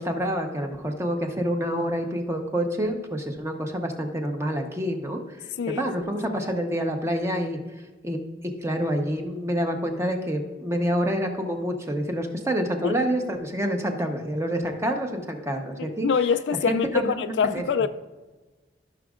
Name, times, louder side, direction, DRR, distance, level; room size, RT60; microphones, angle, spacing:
voice 1, 0.0-5.5 5.8-7.6 8.0-16.1 16.7-17.6, equal, 15° right, 0.9 m, -27 dB
voice 2, 15.8-17.9, left 6 dB, 85° left, 0.3 m, -25 dB
14.5 x 6.2 x 2.4 m
head